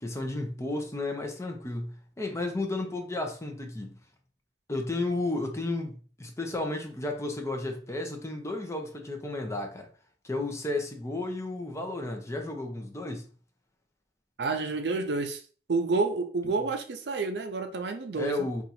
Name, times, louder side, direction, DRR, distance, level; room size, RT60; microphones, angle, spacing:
voice 1, 0.0-3.9 4.7-5.9 6.2-9.9 10.2-13.3 18.1-18.6, left 2 dB, 15° left, 0.6 m, -33 dB
voice 2, 14.4-15.4 15.7-18.5, right 3 dB, 70° right, 0.5 m, -29 dB
2.8 x 2.4 x 4.1 m
head